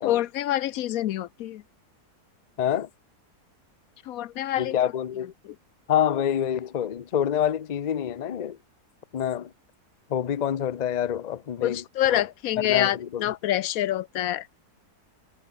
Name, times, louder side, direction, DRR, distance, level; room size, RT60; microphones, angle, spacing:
voice 1, 0.0-1.6 4.1-4.8 5.4-5.5 11.6-14.5, left 13 dB, 70° left, 1.0 m, -26 dB
voice 2, 2.6-2.9 4.6-5.3 5.9-8.6 9.1-9.5 10.1-11.8 12.1-12.2 12.6-13.3, left 9 dB, 90° left, 0.3 m, -27 dB
omnidirectional pair, 1.7 m